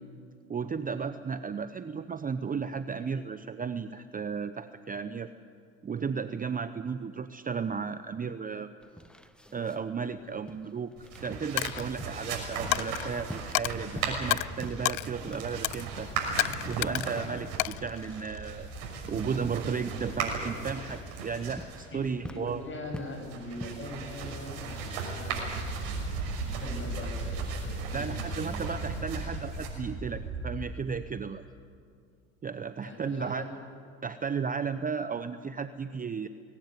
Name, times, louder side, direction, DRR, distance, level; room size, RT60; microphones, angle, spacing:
voice 1, 0.5-5.3 5.8-8.7 9.5-10.9 11.2-16.1 16.6-18.7 19.1-22.6 27.9-31.4 32.4-33.4 34.0-36.3, right 6 dB, 20° right, 11 dB, 0.8 m, -34 dB
sound 1, 8.8-24.0, equal, ahead, 1.2 m, -48 dB
sound 2, 11.0-30.9, right 4 dB, 70° right, 6.3 m, -37 dB
Coin (dropping), 11.6-11.9 12.7-13.1 13.5-13.7 14.3-14.5 14.8-15.1 15.6-15.9 16.4-17.1 17.6-18.5, left 23 dB, 75° left, 0.5 m, -30 dB
voice 2, 21.9-26.1 26.4-28.9 32.8-33.6, left 1 dB, 30° left, 2 dB, 7.7 m, -42 dB
22.5 x 17.5 x 9.4 m, 2.2 s
hypercardioid pair, 80°, 41 cm